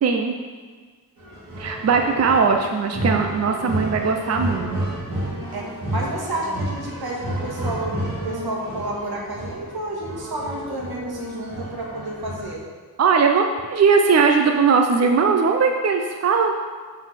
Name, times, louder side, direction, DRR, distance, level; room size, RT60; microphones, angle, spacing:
voice 1, 0.0-0.3 1.6-4.8 13.0-16.5, right 5 dB, 45° right, 4 dB, 0.5 m, -19 dB
sound 1, 1.2-12.5, right 1 dB, 65° right, 2.4 m, -31 dB
voice 2, 5.5-12.6, right 1 dB, 85° right, -2 dB, 1.7 m, -30 dB
7.5 x 4.1 x 6.3 m, 1.5 s
wide cardioid pair, 130°, 36 cm